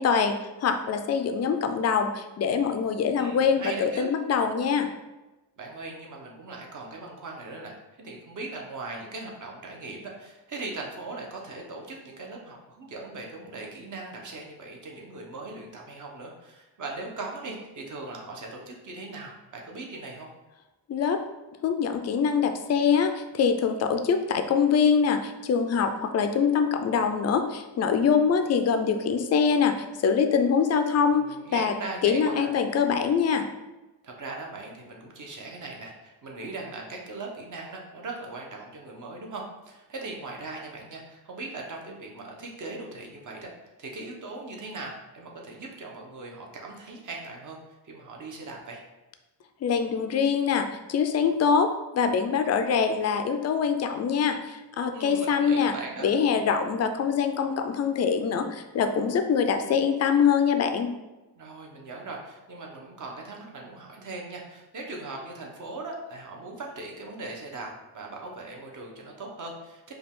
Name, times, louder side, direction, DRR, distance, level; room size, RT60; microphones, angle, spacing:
voice 1, 0.0-4.9 20.9-21.2 21.6-29.7 30.0-31.3 31.5-31.7 32.0-33.5 49.6-55.7 56.0-60.9, left 6 dB, 40° left, 7 dB, 0.4 m, -24 dB
voice 2, 3.2-4.1 5.6-20.3 31.1-32.5 34.0-43.5 43.8-47.6 47.8-48.8 54.9-56.1 61.4-69.9, right 3 dB, 45° right, 0 dB, 0.9 m, -39 dB
5.0 x 2.4 x 3.6 m, 1.1 s
cardioid pair, 125°, 42 cm